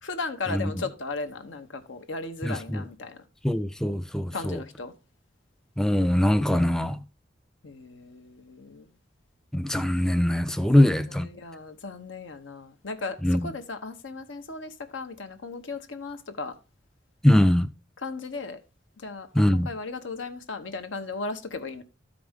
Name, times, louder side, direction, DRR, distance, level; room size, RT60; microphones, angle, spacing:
voice 1, 0.0-3.2 4.3-4.9 7.6-8.9 10.7-16.6 18.0-18.6 19.0-21.8, left 3 dB, 80° left, 1.0 m, -36 dB
voice 2, 3.4-4.6 5.8-6.9 9.5-11.3 13.2-13.4 17.2-17.7 19.4-19.7, left 1 dB, 5° left, 0.3 m, -22 dB
12.5 x 5.1 x 3.5 m
head